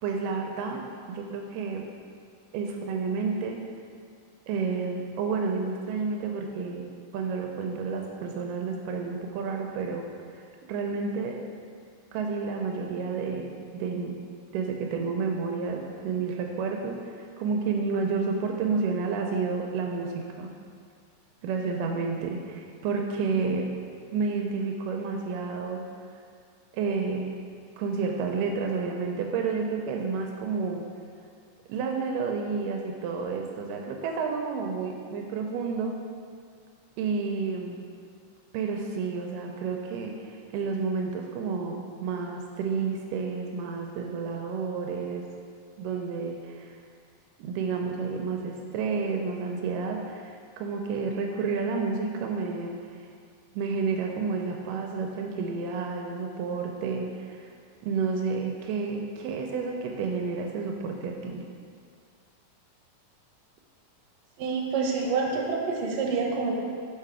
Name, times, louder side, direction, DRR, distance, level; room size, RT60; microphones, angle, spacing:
voice 1, 0.0-1.9 2.5-3.7 4.5-6.9 7.1-10.4 10.7-11.4 12.1-14.2 14.5-20.5 21.4-23.7 24.1-25.9 26.7-27.3 27.8-30.9 31.7-36.0 37.0-37.8 38.5-45.3 45.8-46.8 47.4-52.8 53.5-57.5 57.8-61.5, right 4 dB, 85° right, 2 dB, 2.1 m, -30 dB
voice 2, 64.4-66.6, right 4 dB, 70° right, -1 dB, 1.8 m, -27 dB
5.6 x 5.5 x 4.8 m, 2.2 s
omnidirectional pair, 3.8 m